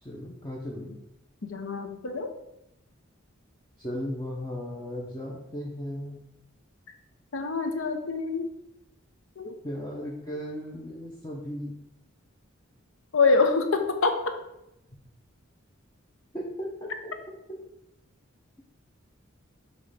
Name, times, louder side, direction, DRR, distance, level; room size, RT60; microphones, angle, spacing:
voice 1, 0.0-1.0 3.8-6.2 9.6-11.8 16.3-17.1 17.5-17.6, equal, 20° left, -3 dB, 0.7 m, -36 dB
voice 2, 1.4-2.3 7.3-8.5 9.4-9.5 13.1-14.2, left 4 dB, 75° left, 6 dB, 0.8 m, -25 dB
6.2 x 3.1 x 4.9 m, 0.85 s
head